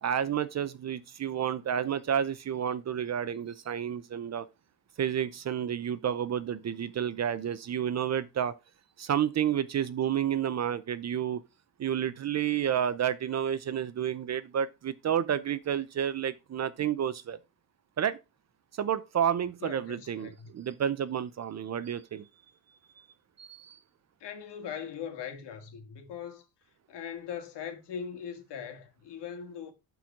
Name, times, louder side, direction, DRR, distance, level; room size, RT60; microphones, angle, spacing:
voice 1, 0.0-4.5 5.0-8.5 9.0-11.4 11.8-17.4 18.0-18.2 18.8-22.3 23.4-23.8, right 9 dB, 35° right, 0.7 m, -30 dB
voice 2, 19.6-20.5 24.2-26.5 26.9-29.7, left 7 dB, 60° left, 2.4 m, -40 dB
12.0 x 4.7 x 3.8 m
cardioid pair, 130°, 46 cm